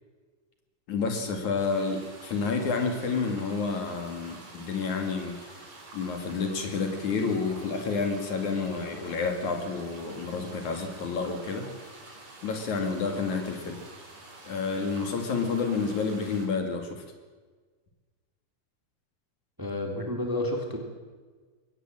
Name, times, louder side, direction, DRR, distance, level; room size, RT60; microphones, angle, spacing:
voice 1, 0.9-5.6 5.9-11.7 12.4-13.8 14.4-17.0, left 4 dB, 65° left, 5 dB, 3.6 m, -29 dB
sound 1, 1.6-16.5, right 2 dB, 50° right, 6.1 m, -48 dB
voice 2, 19.6-20.8, left 1 dB, 5° right, 2 dB, 2.8 m, -30 dB
23.0 x 18.0 x 7.7 m, 1.4 s
omnidirectional pair, 3.8 m